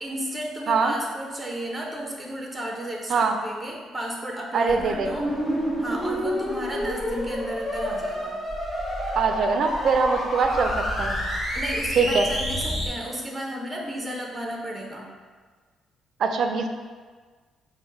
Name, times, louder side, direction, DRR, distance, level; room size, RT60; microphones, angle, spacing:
voice 1, 0.0-5.3 5.8-8.4 11.5-15.1, equal, 10° right, 0 dB, 0.6 m, -33 dB
voice 2, 4.5-5.2 9.1-11.2 12.0-12.3 16.2-16.7, right 4 dB, 60° right, 5 dB, 0.4 m, -23 dB
sound 1, 4.7-12.9, equal, 10° left, 1.5 m, -29 dB
4.2 x 2.1 x 4.5 m, 1.5 s
cardioid pair, 90°, 0 cm